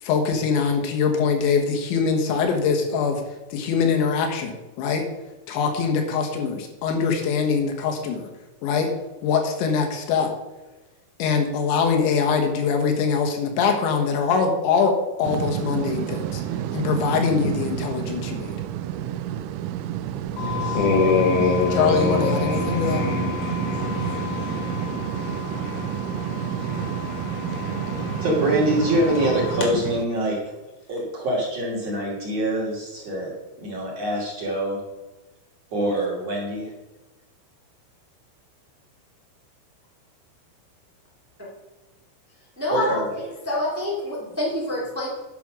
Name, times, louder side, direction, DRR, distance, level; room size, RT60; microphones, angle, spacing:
voice 1, 0.0-3.2 3.5-5.0 5.5-8.3 8.6-8.9 9.2-10.3 11.2-16.4 16.7-18.6 21.7-23.0, left 5 dB, 80° left, 3 dB, 3.6 m, -23 dB
sound 1, 15.2-30.1, right 11 dB, 85° right, 3.0 m, -30 dB
sound 2, 20.4-29.7, left 4 dB, 45° left, 2.4 m, -26 dB
voice 2, 28.2-30.4 30.9-34.8 35.7-36.7 42.7-43.1, right 1 dB, 40° right, -4 dB, 3.2 m, -24 dB
voice 3, 42.6-43.0 43.4-45.1, left 1 dB, 20° right, -4 dB, 0.3 m, -26 dB
11.0 x 6.1 x 6.3 m, 1.1 s
omnidirectional pair, 5.3 m